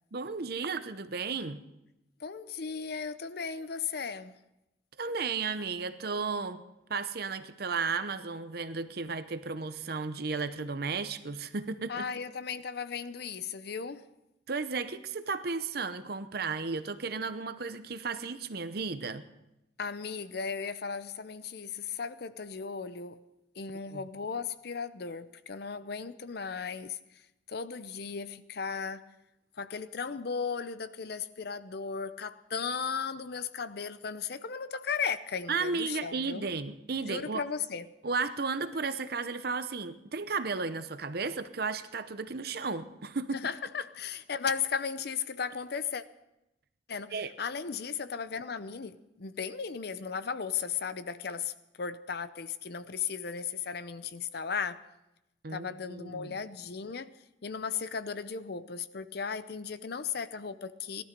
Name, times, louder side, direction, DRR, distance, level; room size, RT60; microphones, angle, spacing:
voice 1, 0.1-1.6 5.0-6.6 6.9-12.1 14.5-19.2 23.9-24.0 35.5-37.4 38.0-43.5 47.1-47.3 55.4-56.4, right 4 dB, 55° right, 11 dB, 0.8 m, -34 dB
voice 2, 2.2-4.3 11.9-14.1 19.8-23.2 23.6-27.0 27.5-29.0 29.6-36.4 37.0-37.9 43.3-46.0 46.9-54.9 55.5-57.1 57.4-61.0, left 6 dB, 55° left, 13 dB, 0.6 m, -36 dB
17.5 x 12.5 x 5.2 m, 0.91 s
head